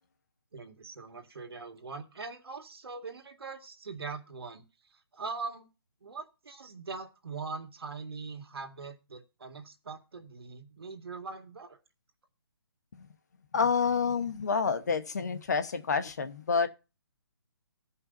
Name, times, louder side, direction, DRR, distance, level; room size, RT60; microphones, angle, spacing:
voice 1, 0.5-5.7 6.0-11.8, right 4 dB, 70° right, 2.1 m, -42 dB
voice 2, 13.5-16.7, left 5 dB, 45° left, 1.0 m, -28 dB
14.5 x 5.5 x 4.0 m
hypercardioid pair, 175°, 13 cm